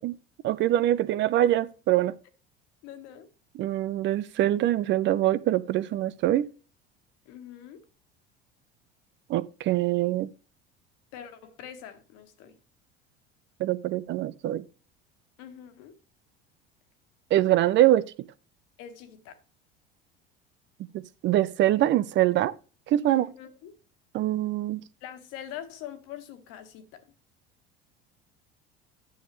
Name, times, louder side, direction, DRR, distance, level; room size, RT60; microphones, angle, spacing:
voice 1, 0.4-2.1 3.6-6.5 9.3-10.3 13.6-14.6 17.3-18.0 21.2-22.5 22.9-23.2 24.1-24.8, right 13 dB, 40° right, 0.5 m, -24 dB
voice 2, 2.8-3.3 7.3-7.8 11.1-12.6 15.4-15.9 18.8-19.4 23.1-23.8 25.0-27.0, left 10 dB, 55° left, 1.7 m, -43 dB
10.0 x 7.1 x 3.2 m
figure-of-eight pair, 65°, 30 cm